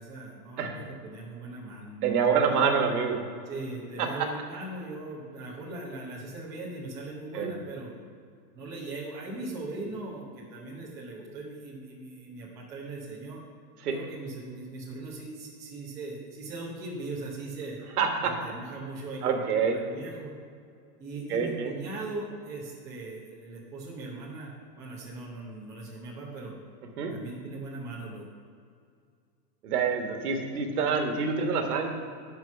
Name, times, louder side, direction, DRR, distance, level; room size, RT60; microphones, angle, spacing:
voice 1, 0.0-2.4 3.5-7.9 8.5-13.4 13.8-17.8 18.2-20.3 21.0-24.5 24.8-26.5 27.1-28.2, right 2 dB, 5° right, -7 dB, 0.6 m, -39 dB
voice 2, 2.0-3.2 4.0-4.3 7.3-7.5 13.8-13.9 18.0-18.3 19.2-19.8 21.3-21.7 27.0-27.1 29.6-31.9, right 6 dB, 65° right, 4 dB, 1.5 m, -26 dB
11.5 x 4.6 x 5.8 m, 2.2 s
supercardioid pair, 170°, 48 cm